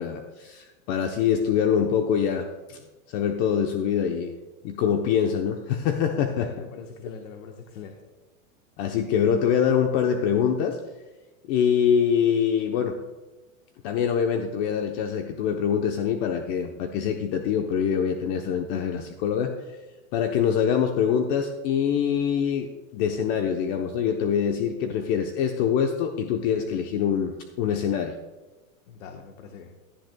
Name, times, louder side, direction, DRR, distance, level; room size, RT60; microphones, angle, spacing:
voice 1, 0.0-2.8 3.1-4.3 4.6-6.5 8.8-10.8 11.5-13.0 13.8-19.5 20.1-27.3 27.6-28.1, left 8 dB, 45° left, 4 dB, 0.9 m, -24 dB
voice 2, 6.4-8.0 28.9-29.8, left 6 dB, 70° left, 3 dB, 1.3 m, -42 dB
17.0 x 11.0 x 2.3 m, 1.2 s
supercardioid pair, 135°, 41 cm